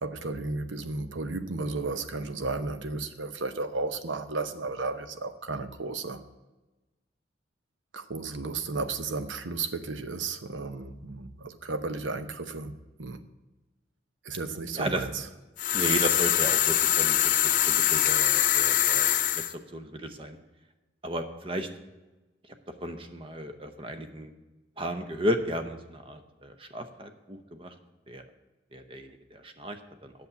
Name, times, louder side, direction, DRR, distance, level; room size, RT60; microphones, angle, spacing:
voice 1, 0.0-6.2 7.9-12.7 13.0-13.2 14.2-15.1, right 3 dB, 85° right, 10 dB, 0.8 m, -33 dB
voice 2, 14.7-15.1 15.7-17.4 17.7-20.4 21.0-21.7 22.8-24.3 24.8-27.7 28.1-28.2 28.7-30.1, equal, 30° right, 8 dB, 0.8 m, -34 dB
sound 1, 15.6-19.5, left 12 dB, 40° left, 0.4 m, -23 dB
8.3 x 6.9 x 8.2 m, 1.1 s
head